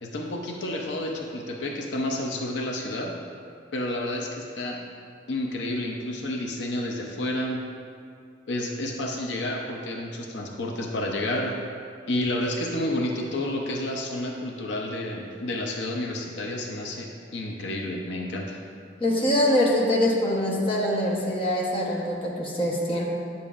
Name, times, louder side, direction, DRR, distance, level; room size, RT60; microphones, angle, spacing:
voice 1, 0.0-3.2 3.7-4.8 5.3-7.6 8.5-11.6 12.1-18.6, left 1 dB, 75° left, 1 dB, 0.6 m, -30 dB
voice 2, 19.0-23.0, left 1 dB, 30° left, -3 dB, 1.0 m, -24 dB
9.2 x 6.9 x 2.5 m, 2.3 s
head